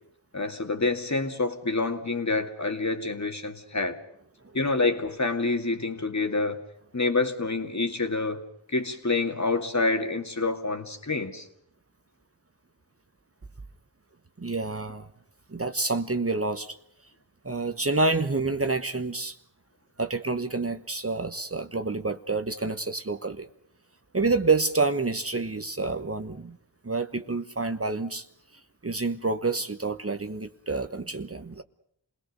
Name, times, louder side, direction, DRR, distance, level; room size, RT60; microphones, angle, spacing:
voice 1, 0.3-4.0 4.5-6.6 6.9-8.4 8.7-11.4, left 3 dB, 40° left, 2.3 m, -27 dB
voice 2, 14.4-15.1 15.5-16.8 17.4-19.4 20.0-23.5 24.1-26.6 26.8-28.2 28.8-31.6, right 3 dB, 30° right, 1.1 m, -28 dB
27.5 x 18.5 x 6.6 m
cardioid pair, 40°, 44 cm